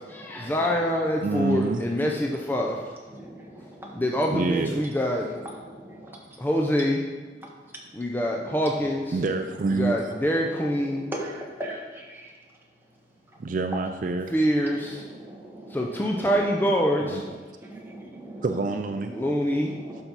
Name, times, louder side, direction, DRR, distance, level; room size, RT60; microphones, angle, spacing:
voice 1, 0.1-2.8 3.9-5.2 6.4-7.0 7.9-9.2 9.7-11.0 14.3-15.0 15.7-17.2 19.1-19.7, equal, 10° left, 0 dB, 0.5 m, -25 dB
voice 2, 1.2-1.9 4.3-4.8 9.1-10.1 13.4-14.4 17.0-17.2 18.4-19.1, right 3 dB, 45° right, 5 dB, 0.4 m, -27 dB
voice 3, 3.1-4.0 5.6-6.2 11.0-12.3 15.0-16.1 17.6-18.4 19.2-20.0, right 1 dB, 10° right, -3 dB, 1.4 m, -40 dB
11.5 x 5.8 x 4.0 m, 1.4 s
head